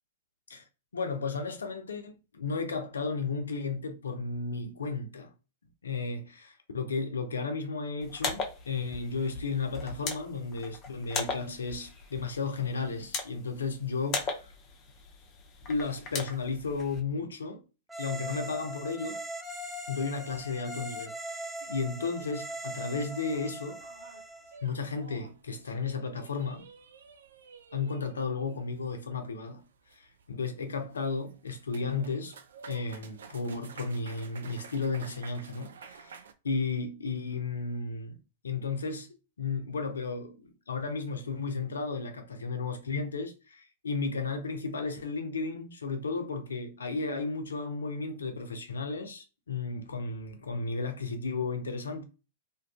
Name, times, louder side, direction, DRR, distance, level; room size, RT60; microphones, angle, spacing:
voice 1, 0.9-5.3 5.8-14.5 15.7-17.6 18.0-19.2 19.9-23.8 24.6-26.6 27.7-29.6 29.9-32.4 32.7-38.2 38.4-39.1 39.4-52.0, left 4 dB, 75° left, 0.5 m, -34 dB
sound 1, 8.0-17.0, left 4 dB, 35° left, 0.6 m, -39 dB
sound 2, 17.9-24.6, right 1 dB, 10° right, 0.5 m, -40 dB
sound 3, 21.5-36.3, right 6 dB, 70° right, 0.3 m, -52 dB
2.5 x 2.3 x 2.3 m
figure-of-eight pair, 100°, 0 cm